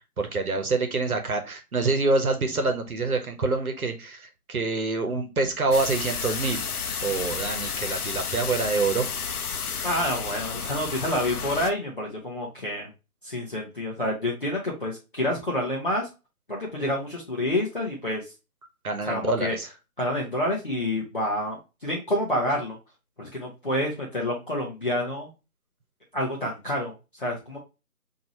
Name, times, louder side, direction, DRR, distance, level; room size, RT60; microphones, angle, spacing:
voice 1, 0.2-6.7 7.0-9.1 18.8-19.7, right 3 dB, 70° right, 6 dB, 1.1 m, -26 dB
sound 1, 5.7-11.7, left 6 dB, 75° left, 0.6 m, -31 dB
voice 2, 9.8-12.9 13.2-16.1 16.5-18.3 19.0-19.6 20.0-22.8 23.2-25.3 26.1-27.6, left 1 dB, 35° left, -4 dB, 0.7 m, -28 dB
4.6 x 2.7 x 2.8 m, 0.28 s
figure-of-eight pair, 160°, 45 cm